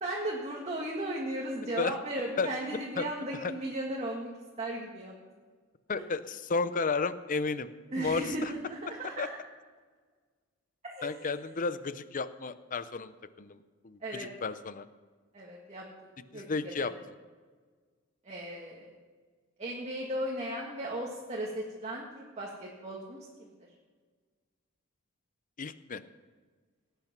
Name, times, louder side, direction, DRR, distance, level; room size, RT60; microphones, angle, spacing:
voice 1, 0.0-4.3 4.6-5.1 5.9-6.0 7.9-9.3 10.8-11.2 14.0-14.3 15.3-15.8 16.3-16.9 18.2-18.9 19.6-23.5, right 1 dB, 35° right, -2 dB, 1.8 m, -36 dB
voice 2, 3.0-3.5 5.9-7.7 8.0-8.5 9.2-9.3 11.0-13.1 13.4-13.6 13.8-14.9 16.3-16.9 25.6-26.0, left 4 dB, 40° left, 13 dB, 0.6 m, -32 dB
18.0 x 9.0 x 6.0 m, 1.5 s
head